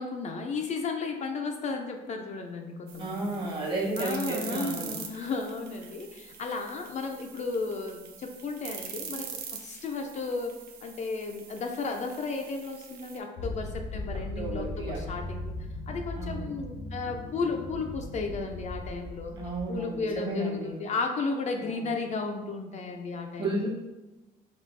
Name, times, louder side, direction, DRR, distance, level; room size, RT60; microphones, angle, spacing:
voice 1, 0.0-3.5 4.0-10.6 10.8-15.5 15.9-19.3 19.7-23.7, left 4 dB, 45° left, 3 dB, 0.5 m, -34 dB
sound 1, 2.9-13.2, right 7 dB, 70° right, 0.6 m, -44 dB
voice 2, 3.0-5.0 14.1-15.1 16.2-16.5 19.3-20.8 21.6-21.9 23.4-23.7, right 2 dB, 30° right, -1 dB, 1.2 m, -33 dB
sound 2, 13.4-20.2, left 2 dB, 80° left, 0.7 m, -38 dB
4.1 x 2.9 x 3.2 m, 1.1 s
cardioid pair, 110°, 17 cm